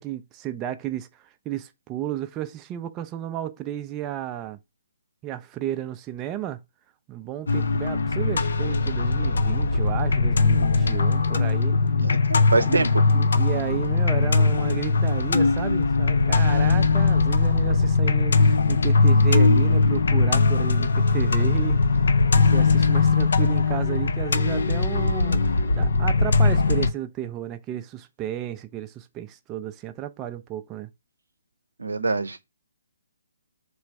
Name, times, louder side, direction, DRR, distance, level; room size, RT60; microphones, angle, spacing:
voice 1, 0.0-4.6 5.2-6.6 7.1-11.7 12.5-21.8 22.3-30.9, right 12 dB, 20° right, 0.4 m, -33 dB
sound 1, 7.5-26.9, left 3 dB, 70° left, 0.4 m, -20 dB
voice 2, 12.0-13.0 31.8-32.4, right 3 dB, 80° right, 0.6 m, -24 dB
3.2 x 3.0 x 4.5 m
figure-of-eight pair, 140°, 0 cm